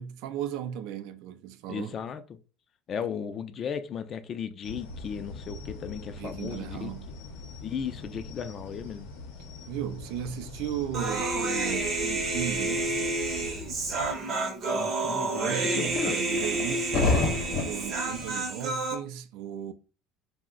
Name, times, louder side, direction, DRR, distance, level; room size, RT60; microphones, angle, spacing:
voice 1, 0.0-2.0 6.2-7.1 9.7-13.2 15.3-19.7, right 10 dB, 70° right, 0.3 m, -36 dB
voice 2, 1.7-2.4 2.9-6.9 7.6-9.1 14.7-16.2, left 7 dB, 35° left, 0.3 m, -36 dB
sound 1, 4.6-14.2, left 3 dB, 90° left, 0.6 m, -43 dB
Human voice, 10.9-18.9, right 2 dB, 40° right, 0.7 m, -29 dB
sound 2, 15.7-18.3, left 3 dB, 55° left, 0.8 m, -29 dB
2.5 x 2.0 x 3.6 m
cardioid pair, 130°, 0 cm